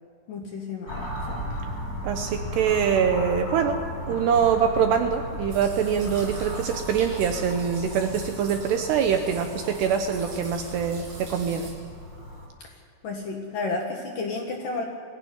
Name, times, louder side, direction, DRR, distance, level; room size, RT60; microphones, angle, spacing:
voice 1, 0.3-0.9 13.0-14.8, left 3 dB, 60° left, 1 dB, 2.4 m, -31 dB
sound 1, 0.9-12.5, equal, 20° left, 4.7 m, -35 dB
voice 2, 2.0-3.8 4.1-11.7, right 7 dB, 75° right, 6 dB, 2.6 m, -24 dB
sound 2, 5.5-11.7, right 3 dB, 60° right, 7.6 m, -43 dB
21.5 x 16.0 x 9.6 m, 2.2 s
omnidirectional pair, 5.7 m